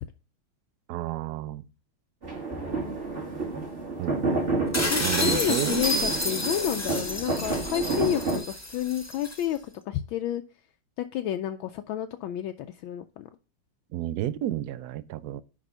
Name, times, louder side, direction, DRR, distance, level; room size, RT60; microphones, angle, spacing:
voice 1, 0.9-1.6 4.0-4.4 5.0-6.1 13.9-15.4, right 13 dB, 80° right, 0.9 m, -31 dB
sound 1, 2.2-8.4, right 3 dB, 30° right, 2.0 m, -30 dB
sound 2, 4.7-9.4, left 1 dB, 10° left, 1.0 m, -30 dB
voice 2, 4.9-9.6 9.9-10.4 11.0-13.3, left 11 dB, 75° left, 1.3 m, -30 dB
10.5 x 3.5 x 5.4 m
omnidirectional pair, 2.3 m